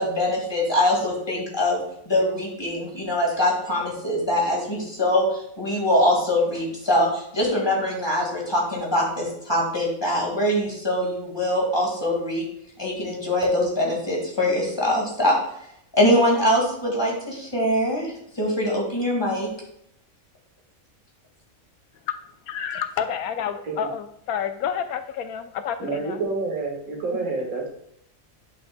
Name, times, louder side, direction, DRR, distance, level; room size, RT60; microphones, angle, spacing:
voice 1, 0.0-1.8 2.1-12.4 12.8-15.4 15.9-19.5, left 1 dB, 20° left, -2 dB, 1.9 m, -23 dB
voice 2, 22.5-26.2, left 8 dB, 85° left, 9 dB, 1.1 m, -29 dB
voice 3, 25.8-27.7, right 3 dB, 80° right, -1 dB, 2.1 m, -28 dB
10.5 x 6.0 x 2.2 m, 0.74 s
omnidirectional pair, 1.5 m